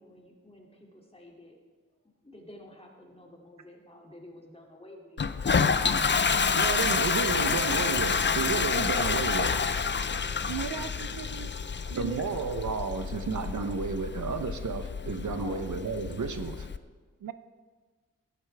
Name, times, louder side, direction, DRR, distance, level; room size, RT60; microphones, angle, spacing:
voice 1, 0.0-1.6 2.0-6.9 15.3-15.8, left 1 dB, 20° left, -1 dB, 2.5 m, -50 dB
Toilet flush, 5.2-16.8, left 5 dB, 35° left, 0.5 m, -28 dB
voice 2, 6.6-9.7 12.0-16.7, right 4 dB, 65° right, 8 dB, 0.8 m, -32 dB
voice 3, 10.5-11.5 11.8-12.2 17.2-17.3, right 9 dB, 90° right, 12 dB, 0.5 m, -37 dB
14.0 x 11.0 x 3.4 m, 1.4 s
cardioid pair, 55°, 32 cm